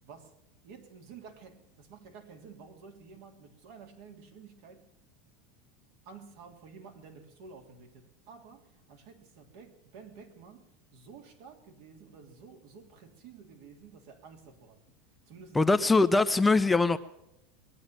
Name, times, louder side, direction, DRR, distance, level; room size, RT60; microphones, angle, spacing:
voice 1, 0.0-0.3 0.6-4.9 6.0-14.8 15.3-15.7, right 5 dB, 70° right, 2.9 m, -51 dB
voice 2, 15.5-17.0, left 3 dB, 10° left, 0.6 m, -22 dB
21.5 x 8.8 x 7.4 m
supercardioid pair, 125°, 0 cm